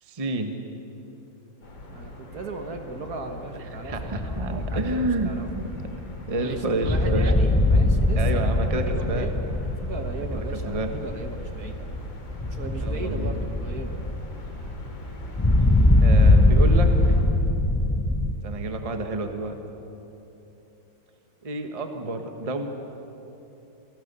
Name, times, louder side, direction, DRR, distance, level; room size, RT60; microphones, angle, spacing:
voice 1, 0.0-0.6 3.8-5.3 5.6-5.9 6.3-7.3 8.1-9.3 10.2-11.0 12.8-13.4 16.0-16.9 18.4-19.6 21.4-22.7, right 2 dB, 20° right, 5 dB, 1.2 m, -29 dB
sound 1, 1.6-17.2, left 2 dB, 65° left, 3.6 m, -42 dB
voice 2, 1.9-5.5 6.4-8.5 8.9-11.9 12.4-14.0 16.4-16.5, right 3 dB, 50° right, 5 dB, 1.7 m, -37 dB
sound 2, 3.9-18.3, left 2 dB, 25° left, 0.4 m, -22 dB
28.0 x 18.5 x 6.9 m, 3.0 s
omnidirectional pair, 2.2 m